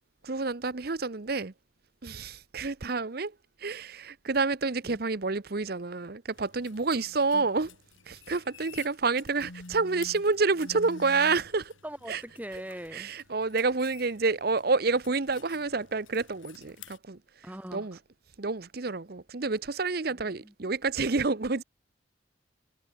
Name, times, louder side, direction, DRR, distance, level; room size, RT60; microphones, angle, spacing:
voice 1, 0.2-1.5 2.0-3.3 3.6-7.7 8.1-11.7 12.1-12.2 12.9-17.2 17.7-18.0 18.4-21.6, right 4 dB, 50° right, 0.9 m, -29 dB
sound 1, 6.3-17.0, left 4 dB, 85° left, 1.8 m, -51 dB
voice 2, 11.8-13.1 17.4-17.9 20.1-20.5, equal, 10° right, 2.8 m, -41 dB
head